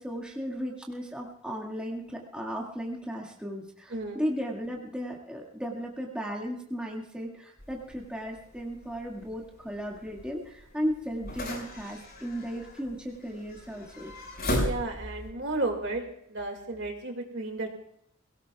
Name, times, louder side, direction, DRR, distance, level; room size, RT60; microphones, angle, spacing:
voice 1, 0.0-14.1, equal, 5° right, -2 dB, 2.0 m, -35 dB
voice 2, 3.9-4.2 14.5-16.0 16.3-17.7, right 2 dB, 55° right, 2 dB, 2.4 m, -33 dB
sound 1, 7.6-15.3, equal, 50° left, 6.0 m, -37 dB
23.0 x 18.0 x 2.4 m, 0.72 s
head